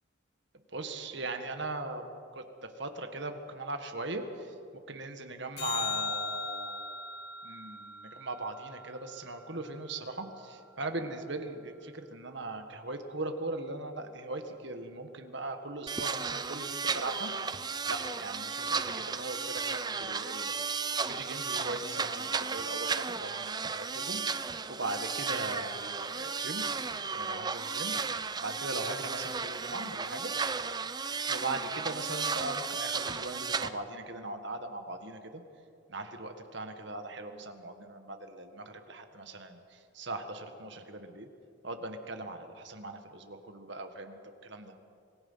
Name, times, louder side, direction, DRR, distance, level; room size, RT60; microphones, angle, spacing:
voice 1, 0.7-2.1 2.3-4.5 4.9-6.9 7.4-17.3 17.9-20.5 21.1-24.2 24.7-26.6 27.1-27.9 28.4-30.3 31.3-35.4 35.9-41.3 41.6-44.7, right 2 dB, 55° right, 6 dB, 1.8 m, -39 dB
sound 1, 5.6-10.0 16.6-16.7, left 5 dB, 50° left, 2.3 m, -39 dB
sound 2, 15.9-33.7, right 5 dB, 20° right, 0.6 m, -34 dB
26.0 x 20.0 x 5.8 m, 2.5 s
head